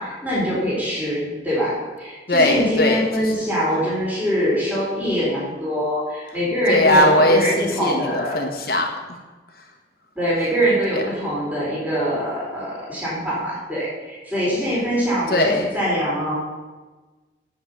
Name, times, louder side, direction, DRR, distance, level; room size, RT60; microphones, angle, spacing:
voice 1, 0.0-8.4 10.2-16.4, equal, 10° right, -7 dB, 4.2 m, -23 dB
voice 2, 2.3-3.4 6.7-8.9 10.9-11.0 15.3-15.7, left 1 dB, 55° left, 1 dB, 1.5 m, -19 dB
10.0 x 7.1 x 8.3 m, 1.3 s
head